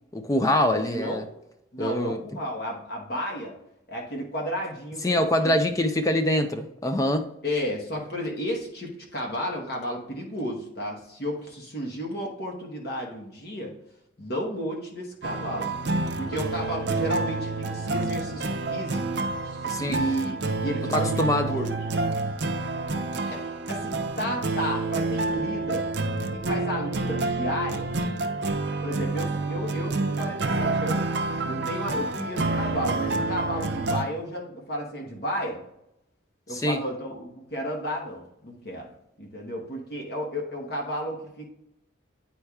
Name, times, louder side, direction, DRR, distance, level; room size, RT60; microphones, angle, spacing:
voice 1, 0.1-1.2 1.8-2.2 5.0-7.3 19.6-20.1 20.9-21.5 36.5-36.8, left 1 dB, 15° left, 6 dB, 0.4 m, -24 dB
voice 2, 0.7-1.2 1.7-3.6 3.9-5.5 7.4-13.7 14.2-15.7 16.2-19.1 19.4-21.7 23.2-23.4 23.7-25.9 26.3-27.9 28.8-31.0 31.4-35.6 36.5-38.9 39.2-41.5, equal, 50° left, -1 dB, 1.1 m, -32 dB
sound 1, 15.2-34.0, right 3 dB, 60° right, 0.6 m, -28 dB
9.6 x 4.4 x 2.3 m, 0.83 s
head